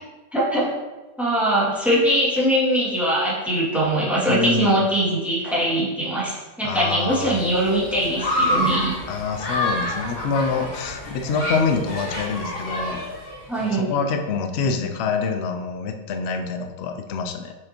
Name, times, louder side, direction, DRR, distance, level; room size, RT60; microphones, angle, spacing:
voice 1, 0.3-0.7 1.2-8.9 13.5-13.9, right 1 dB, ahead, -8 dB, 2.0 m, -22 dB
voice 2, 4.3-4.8 6.6-7.5 9.1-13.1 13.6-17.5, left 4 dB, 85° left, 5 dB, 0.5 m, -26 dB
Human group actions, 7.1-13.7, left 1 dB, 35° left, 1.5 m, -28 dB
6.4 x 6.1 x 2.9 m, 1.1 s
omnidirectional pair, 1.9 m